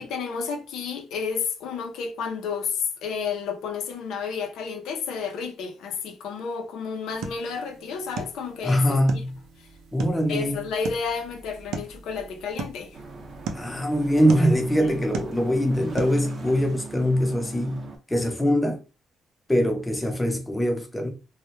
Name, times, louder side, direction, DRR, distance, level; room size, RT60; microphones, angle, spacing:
voice 1, 0.0-9.2 9.6-9.7 10.3-13.0 14.4-14.5 14.8-15.0, left 6 dB, 85° left, 0.4 m, -31 dB
sound 1, 7.1-16.3, right 5 dB, 80° right, 0.4 m, -38 dB
voice 2, 8.6-9.4 9.9-10.6 13.5-18.8 19.5-21.1, equal, 10° left, 0.6 m, -23 dB
sound 2, 12.9-18.0, right 4 dB, 40° right, 0.6 m, -40 dB
2.1 x 2.0 x 2.9 m
cardioid pair, 90°, 0 cm